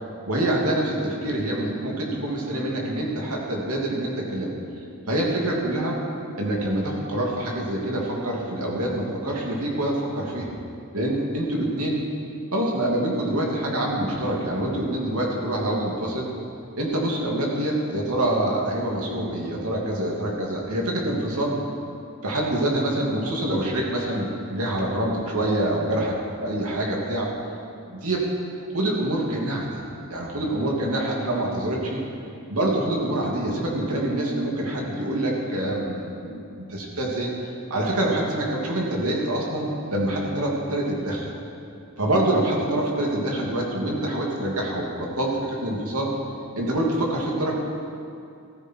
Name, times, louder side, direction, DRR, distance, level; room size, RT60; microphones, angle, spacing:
voice 1, 0.3-4.5 5.1-6.0 6.4-10.5 10.9-12.0 12.5-16.3 16.8-21.6 22.2-27.3 27.9-28.3 28.7-29.8 30.1-32.0 32.5-41.3 42.0-46.1 46.6-47.5, right 1 dB, 85° right, -2 dB, 2.7 m, -26 dB
15.5 x 14.0 x 4.7 m, 2.5 s
head